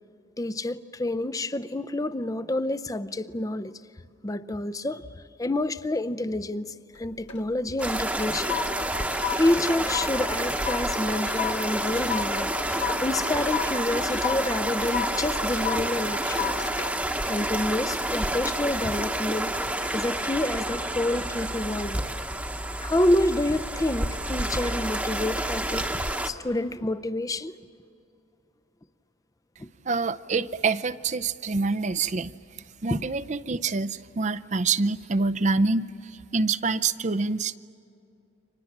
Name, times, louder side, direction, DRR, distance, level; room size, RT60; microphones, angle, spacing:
voice 1, 0.4-3.7 4.2-5.1 5.4-8.5 9.4-12.6 13.0-16.5 17.3-19.6 19.9-22.0 22.8-27.5 29.6-29.7 32.9-33.0, left 1 dB, 20° left, 0.6 m, -28 dB
sound 1, 7.0-7.5 7.8-18.4 18.8-19.1, left 8 dB, 85° left, 1.8 m, -34 dB
sound 2, 7.8-26.3, right 1 dB, 5° right, 1.1 m, -29 dB
voice 2, 29.8-32.3 32.8-37.6, right 4 dB, 40° right, 0.6 m, -26 dB
30.0 x 25.5 x 7.3 m
head